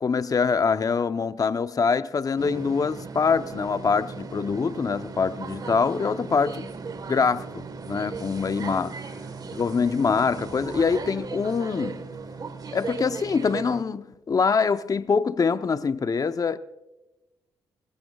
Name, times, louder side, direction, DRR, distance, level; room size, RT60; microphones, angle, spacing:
voice 1, 0.0-6.7 7.1-8.9 9.5-12.1 12.7-16.6, left 5 dB, 40° left, 0.8 m, -24 dB
sound 1, 2.4-13.8, right 4 dB, 45° right, 1.4 m, -37 dB
24.0 x 20.5 x 2.4 m
supercardioid pair, 50°, 9 cm